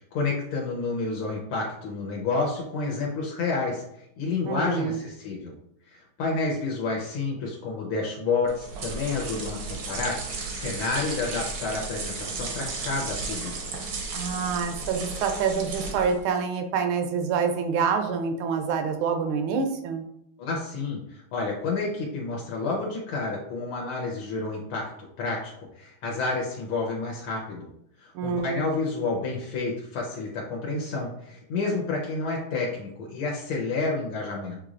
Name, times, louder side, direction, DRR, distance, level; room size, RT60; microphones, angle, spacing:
voice 1, 0.1-5.5 5.9-13.7 20.4-24.8 25.2-27.7 28.0-34.6, left 3 dB, 75° left, -2 dB, 1.7 m, -30 dB
voice 2, 4.4-5.0 14.1-20.0 28.1-28.6, right 6 dB, 75° right, 6 dB, 1.4 m, -27 dB
sound 1, 8.5-16.3, right 3 dB, 60° right, 1.0 m, -34 dB
6.5 x 3.1 x 2.5 m, 0.75 s
omnidirectional pair, 2.4 m